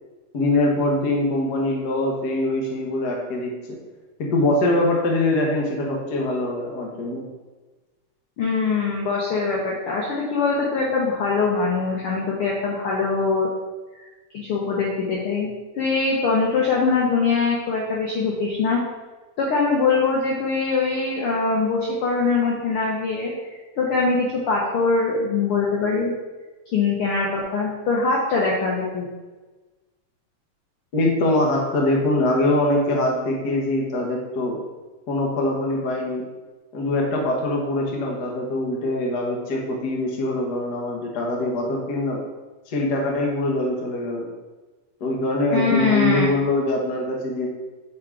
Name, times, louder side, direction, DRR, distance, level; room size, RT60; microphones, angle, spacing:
voice 1, 0.3-3.8 4.2-7.3 30.9-34.6 35.1-36.2 36.7-42.2 42.7-44.3 45.0-47.5, left 1 dB, 65° left, -1 dB, 0.9 m, -23 dB
voice 2, 8.4-13.5 14.3-15.5 15.7-18.8 19.4-23.3 23.8-26.1 26.7-29.1 45.5-46.3, left 4 dB, 85° left, -2 dB, 1.2 m, -22 dB
7.3 x 3.9 x 4.7 m, 1.2 s
omnidirectional pair, 3.8 m